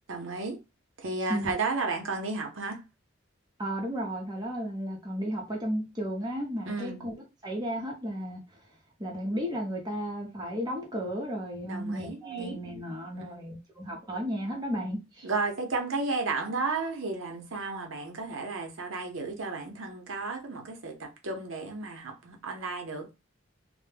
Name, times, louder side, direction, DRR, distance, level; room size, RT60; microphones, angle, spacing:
voice 1, 0.1-0.6 1.0-2.8 6.7-7.0 11.6-12.6 13.2-13.5 15.2-23.1, right 3 dB, 80° right, 0.7 m, -33 dB
voice 2, 3.6-7.1 7.4-8.4 9.0-15.3, equal, 20° right, 0.7 m, -34 dB
2.1 x 2.1 x 3.2 m
head